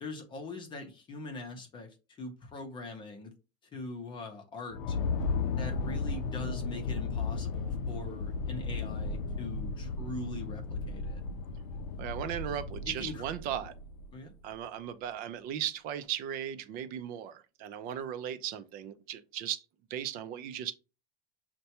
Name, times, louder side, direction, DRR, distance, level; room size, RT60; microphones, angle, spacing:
voice 1, 0.0-3.3 3.7-5.0 5.6-11.2 12.9-13.3 14.1-14.3, left 3 dB, 25° left, 0.7 m, -42 dB
sound 1, 4.7-14.3, left 4 dB, 85° left, 0.5 m, -35 dB
voice 2, 12.0-13.7 14.4-19.6 19.9-20.7, right 10 dB, 45° right, 0.5 m, -37 dB
6.6 x 2.2 x 2.9 m
cardioid pair, 165°, 20 cm